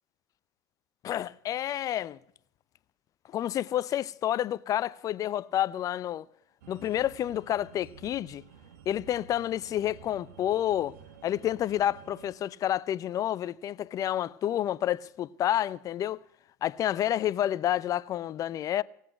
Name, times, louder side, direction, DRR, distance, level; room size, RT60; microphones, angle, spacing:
voice 1, 1.0-2.2 3.3-6.3 6.7-8.4 8.9-11.0 11.2-16.2 16.6-18.8, left 11 dB, 40° left, 0.6 m, -29 dB
sound 1, 6.6-12.4, right 7 dB, 85° right, 1.5 m, -52 dB
18.0 x 8.3 x 9.9 m
hypercardioid pair, 100°, 9 cm